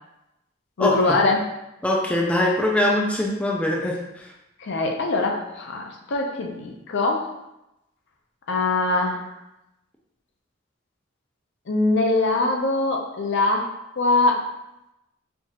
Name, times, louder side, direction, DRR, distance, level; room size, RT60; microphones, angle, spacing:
voice 1, 0.8-1.4 4.6-7.3 8.5-9.2 11.7-13.7 14.0-14.5, left 2 dB, 60° left, 2 dB, 0.5 m, -22 dB
voice 2, 1.8-4.3, left 1 dB, 5° left, -2 dB, 0.4 m, -22 dB
4.5 x 2.4 x 2.8 m, 0.89 s
head